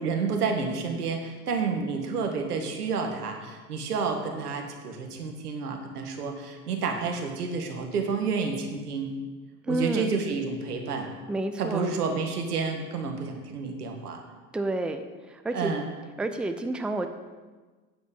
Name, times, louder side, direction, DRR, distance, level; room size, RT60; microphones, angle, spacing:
voice 1, 0.0-9.1 9.7-11.1 11.6-14.2 15.5-15.8, right 5 dB, 90° right, 3 dB, 1.5 m, -30 dB
voice 2, 9.6-10.1 11.3-11.9 14.5-15.7 16.2-17.1, right 2 dB, ahead, 7 dB, 0.5 m, -30 dB
10.0 x 4.4 x 7.2 m, 1.3 s
hypercardioid pair, 80°, 45 cm